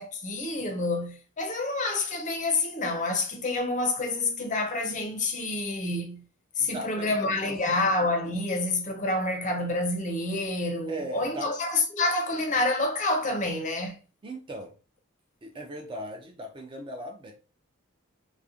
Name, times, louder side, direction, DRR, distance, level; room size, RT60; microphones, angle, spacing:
voice 1, 0.0-6.2 6.6-13.9, left 2 dB, 35° left, 0.5 m, -28 dB
voice 2, 6.6-7.6 10.9-11.5 14.2-14.7 15.4-17.3, right 1 dB, 25° right, 0.3 m, -38 dB
2.3 x 2.0 x 2.7 m
head